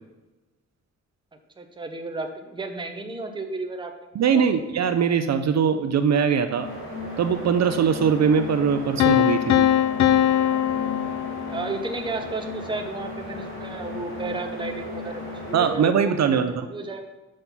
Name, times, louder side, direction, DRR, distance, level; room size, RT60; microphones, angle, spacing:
voice 1, 1.6-3.9 4.2-4.4 11.5-17.1, right 3 dB, 15° right, 5 dB, 0.6 m, -33 dB
voice 2, 4.2-6.7 7.2-9.6 15.5-16.7, right 7 dB, 60° right, 9 dB, 0.5 m, -21 dB
sound 1, 6.5-15.8, left 2 dB, 40° left, 2.7 m, -35 dB
Piano, 9.0-11.9, left 11 dB, 70° left, 0.5 m, -21 dB
6.3 x 5.4 x 5.7 m, 1.1 s
wide cardioid pair, 165°, 30 cm